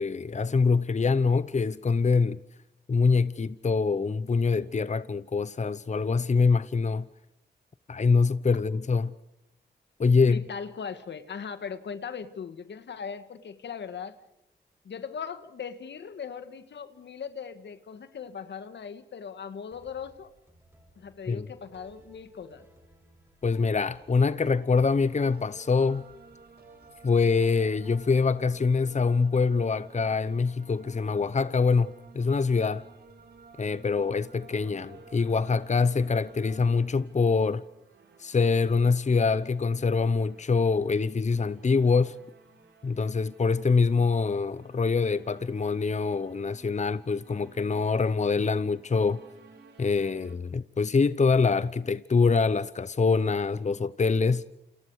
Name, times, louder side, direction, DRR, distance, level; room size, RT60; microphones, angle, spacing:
voice 1, 0.0-2.4 2.9-7.1 7.9-9.1 10.0-10.4 21.3-21.5 23.4-26.0 27.0-32.8 33.6-37.6 38.2-42.2 42.8-49.2 49.8-54.4, left 4 dB, 40° left, 0.9 m, -24 dB
voice 2, 10.3-14.2 14.8-20.3 21.0-22.7, left 6 dB, 80° left, 1.8 m, -39 dB
sound 1, 19.7-37.5, right 1 dB, 15° right, 7.6 m, -58 dB
sound 2, 23.9-36.8, right 4 dB, 60° right, 3.3 m, -53 dB
sound 3, 34.3-50.4, right 4 dB, 80° right, 4.1 m, -58 dB
29.5 x 28.0 x 4.9 m
cardioid pair, 55°, 18 cm